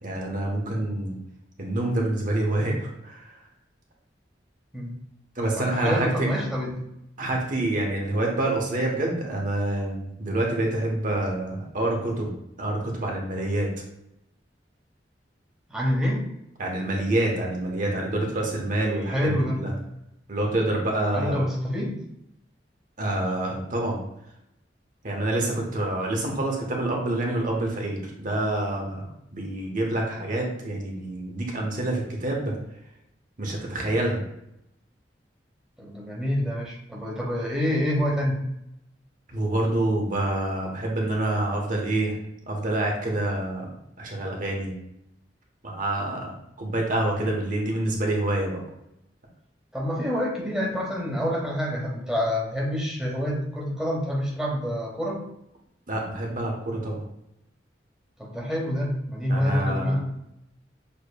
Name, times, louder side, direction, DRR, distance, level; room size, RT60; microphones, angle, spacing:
voice 1, 0.0-1.2 1.6-3.3 5.4-6.3 7.2-13.7 16.6-19.7 20.3-21.4 23.0-24.0 25.0-32.5 33.4-34.2 39.3-42.2 42.4-43.7 44.0-44.7 45.6-46.3 46.6-48.6 55.9-57.0 59.3-60.0, right 1 dB, 50° right, 0 dB, 1.0 m, -27 dB
voice 2, 5.5-6.8 15.7-16.3 19.1-19.6 21.1-22.0 35.8-38.4 49.7-55.2 58.2-60.1, equal, 5° right, -2 dB, 1.0 m, -27 dB
6.8 x 3.0 x 2.3 m, 0.82 s
head